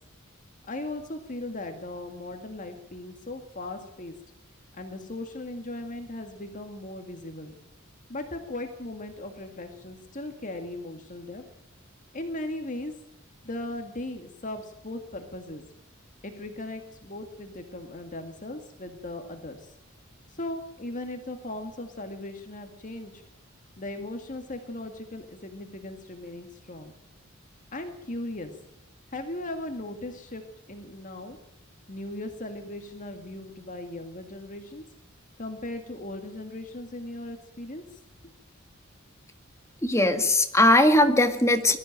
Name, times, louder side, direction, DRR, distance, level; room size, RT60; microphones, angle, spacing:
voice 1, 0.7-4.2 4.7-7.5 8.1-11.4 12.1-12.9 13.4-15.6 16.2-19.7 20.3-23.2 23.8-26.9 27.7-28.5 29.1-31.4 31.9-34.8 35.4-38.0, left 1 dB, 40° left, 5 dB, 1.9 m, -38 dB
voice 2, 39.8-41.8, left 1 dB, 15° left, 7 dB, 1.9 m, -20 dB
21.0 x 14.0 x 8.9 m, 0.83 s
head